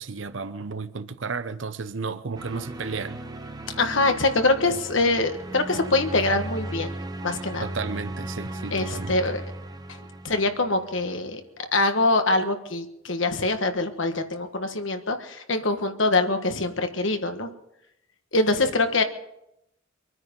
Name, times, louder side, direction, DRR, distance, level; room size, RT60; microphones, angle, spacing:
voice 1, 0.0-3.2 7.6-9.2, right 4 dB, 70° right, 0.8 m, -33 dB
sound 1, 2.4-11.2, right 1 dB, 20° right, 0.9 m, -36 dB
voice 2, 3.8-6.9 7.2-7.7 8.7-9.4 9.9-10.0 10.2-17.5 18.3-19.0, left 2 dB, 70° left, 1.5 m, -24 dB
25.0 x 9.6 x 5.4 m
head